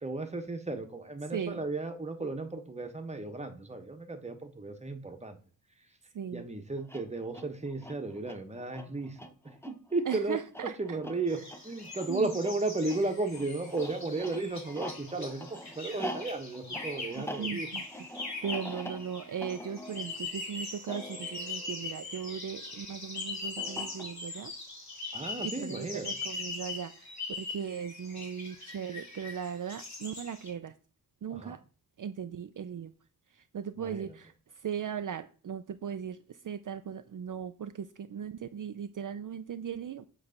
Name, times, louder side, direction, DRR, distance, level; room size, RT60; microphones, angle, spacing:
voice 1, 0.0-5.4 6.3-9.2 9.7-10.4 10.6-17.7 25.1-26.1 31.3-31.6 33.8-34.2, right 2 dB, 20° right, 5 dB, 1.1 m, -34 dB
voice 2, 1.3-1.6 6.1-6.4 10.1-11.0 11.3-11.4 12.1-12.3 17.2-17.8 18.2-24.5 24.9-27.1 27.4-30.7 31.2-31.6 32.0-32.9 33.3-34.3 34.6-36.2 36.4-40.0, right 8 dB, 60° right, 9 dB, 0.5 m, -38 dB
sound 1, 6.8-22.5 23.6-24.4, equal, 5° left, 0.7 m, -45 dB
sound 2, 11.3-30.5, left 3 dB, 50° left, 2.6 m, -41 dB
8.0 x 3.3 x 6.5 m, 0.40 s
wide cardioid pair, 90°, 36 cm